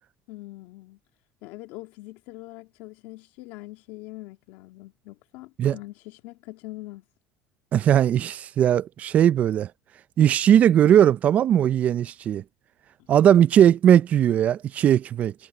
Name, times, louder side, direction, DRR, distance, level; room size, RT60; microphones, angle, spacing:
voice 1, 0.3-1.0 1.4-7.0 13.3-13.4, left 19 dB, 75° left, 2.1 m, -42 dB
voice 2, 7.7-9.7 10.2-12.4 13.1-15.3, right 10 dB, 45° right, 0.5 m, -19 dB
supercardioid pair, 110°, 3 cm